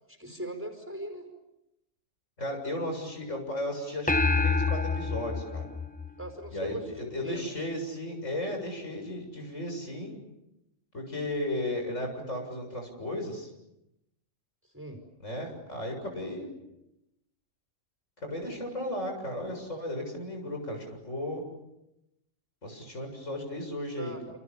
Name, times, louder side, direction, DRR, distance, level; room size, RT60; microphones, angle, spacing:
voice 1, 0.1-1.3 6.2-7.5 14.6-15.0 24.0-24.2, right 1 dB, 10° right, 5 dB, 5.2 m, -40 dB
voice 2, 2.4-5.7 6.5-10.2 10.9-13.5 15.2-16.5 18.2-21.4 22.6-24.1, left 1 dB, 70° left, 3 dB, 7.8 m, -35 dB
sound 1, 4.1-6.7, left 4 dB, 10° left, 0.8 m, -27 dB
29.0 x 28.5 x 7.2 m, 0.87 s
omnidirectional pair, 1.3 m